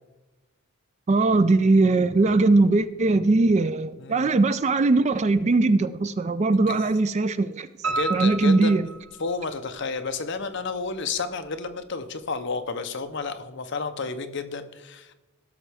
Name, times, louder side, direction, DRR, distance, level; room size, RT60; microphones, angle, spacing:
voice 1, 1.1-7.7 8.1-8.9, right 3 dB, 30° right, 0.3 m, -20 dB
Piano, 7.8-9.8 10.2-11.0 11.4-11.5 11.9-12.0 12.3-12.4, right 4 dB, 75° right, 3.2 m, -31 dB
voice 2, 7.9-8.8 9.2-15.1, left 4 dB, 55° left, 0.7 m, -31 dB
17.0 x 6.4 x 3.4 m
head